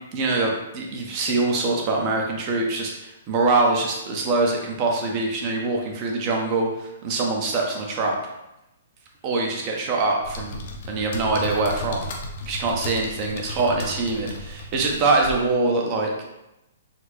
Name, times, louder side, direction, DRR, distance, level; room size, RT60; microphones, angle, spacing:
voice 1, 0.1-8.2 9.2-10.6 10.9-12.0 12.5-16.1, right 3 dB, 35° right, 0 dB, 0.8 m, -24 dB
sound 1, 10.2-15.4, left 1 dB, 55° left, 0.7 m, -34 dB
4.1 x 2.2 x 3.1 m, 0.90 s
hypercardioid pair, 135°, 0 cm